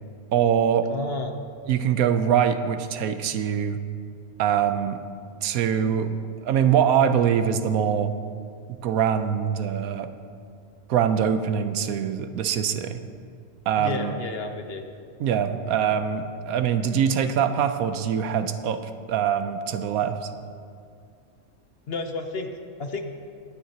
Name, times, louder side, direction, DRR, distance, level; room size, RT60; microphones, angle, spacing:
voice 1, 0.3-0.9 1.7-3.8 4.4-5.0 5.4-6.2 6.4-8.1 8.8-10.1 10.9-13.0 13.7-14.1 15.2-18.8 19.1-20.2, right 8 dB, 85° right, 9 dB, 1.1 m, -23 dB
voice 2, 0.9-1.3 13.8-14.8 21.9-23.0, left 3 dB, 50° left, 5 dB, 0.9 m, -31 dB
22.5 x 9.3 x 2.9 m, 2.3 s
omnidirectional pair, 1.5 m